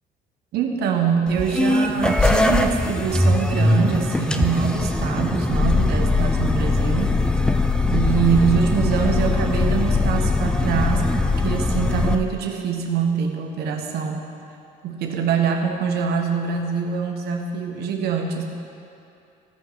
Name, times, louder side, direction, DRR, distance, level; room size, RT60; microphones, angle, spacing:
voice 1, 0.5-7.1 7.9-14.2 14.8-18.4, right 6 dB, 70° right, 2 dB, 1.2 m, -24 dB
sound 1, 1.3-12.1, left 2 dB, 5° left, 0.4 m, -21 dB
15.5 x 5.3 x 3.9 m, 2.7 s
cardioid pair, 110°, 17 cm